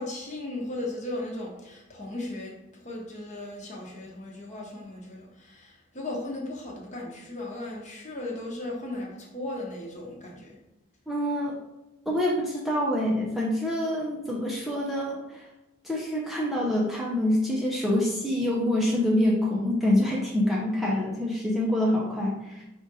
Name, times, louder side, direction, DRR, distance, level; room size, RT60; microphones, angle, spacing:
voice 1, 0.0-10.6, left 1 dB, 35° left, -2 dB, 1.0 m, -36 dB
voice 2, 11.1-11.6 12.1-15.4 15.8-22.6, left 1 dB, ahead, -5 dB, 0.6 m, -26 dB
4.9 x 2.5 x 4.1 m, 0.96 s
head